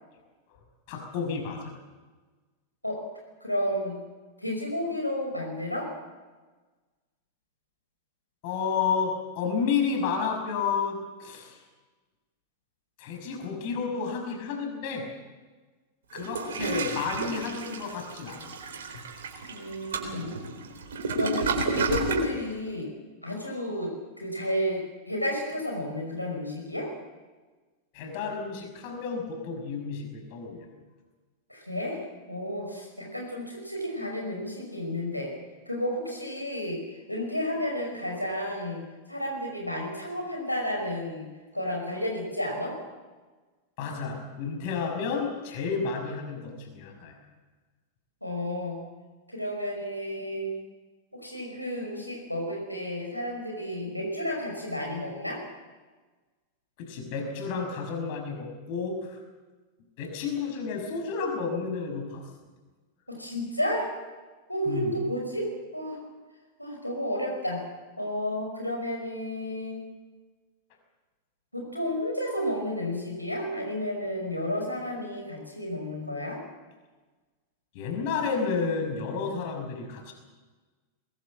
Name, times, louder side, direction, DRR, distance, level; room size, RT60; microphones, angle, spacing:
voice 1, 0.9-1.6 8.4-11.6 13.0-15.0 16.1-18.5 27.9-30.7 43.8-47.1 56.8-59.2 60.0-62.2 64.7-64.9 77.7-80.1, left 5 dB, 45° left, 3 dB, 6.1 m, -31 dB
voice 2, 3.4-4.0 4.4-5.9 19.5-20.3 21.1-22.9 23.2-24.8 25.1-26.9 31.5-35.3 35.7-36.8 37.1-38.8 39.1-41.3 41.5-42.8 48.2-48.8 49.3-50.6 51.1-55.4 63.1-63.9 64.5-66.0 66.6-67.6 68.0-69.8 71.5-76.4, left 1 dB, 90° left, 1 dB, 5.5 m, -32 dB
Toilet flush, 16.1-22.3, right 3 dB, 65° right, 4.0 m, -31 dB
22.0 x 22.0 x 7.5 m, 1.3 s
figure-of-eight pair, 90°, 0 cm